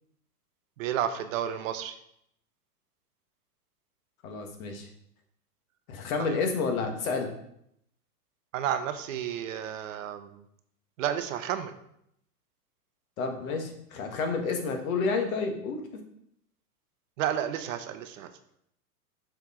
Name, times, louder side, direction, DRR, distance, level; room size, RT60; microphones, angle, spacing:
voice 1, 0.8-2.0 6.2-6.4 8.5-10.4 11.0-11.8 17.2-18.3, right 10 dB, 55° right, 10 dB, 0.7 m, -31 dB
voice 2, 4.2-4.9 5.9-7.3 13.2-16.0, left 4 dB, 60° left, 4 dB, 1.4 m, -30 dB
6.2 x 4.6 x 3.6 m, 0.74 s
hypercardioid pair, 120°, 47 cm